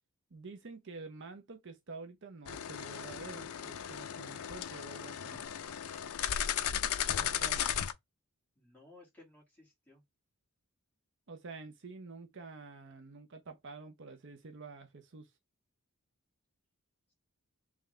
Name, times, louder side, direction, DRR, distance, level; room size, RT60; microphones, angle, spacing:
voice 1, 0.3-5.4 7.2-7.8 11.3-15.3, right 4 dB, 55° right, 0.7 m, -48 dB
sound 1, 2.5-7.9, left 9 dB, 75° left, 0.5 m, -36 dB
voice 2, 8.6-10.0, left 2 dB, 10° left, 2.3 m, -58 dB
3.6 x 3.2 x 3.2 m
head